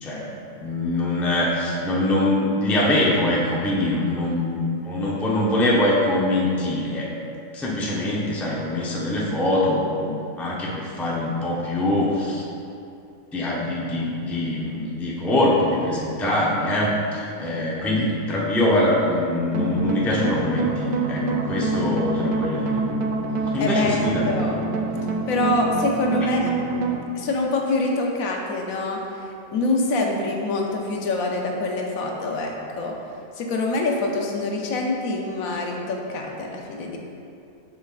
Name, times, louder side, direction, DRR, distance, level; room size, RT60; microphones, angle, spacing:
voice 1, 0.0-7.2 7.5-12.4 13.3-22.8 23.5-24.3, left 1 dB, ahead, -4 dB, 0.4 m, -23 dB
sound 1, 19.5-27.0, right 3 dB, 90° right, 1.1 m, -26 dB
voice 2, 23.6-24.0 24.2-24.6 25.3-26.5 27.2-29.0 29.5-32.9 33.3-37.0, left 2 dB, 80° left, 0 dB, 1.2 m, -25 dB
7.2 x 5.9 x 2.4 m, 2.6 s
omnidirectional pair, 1.4 m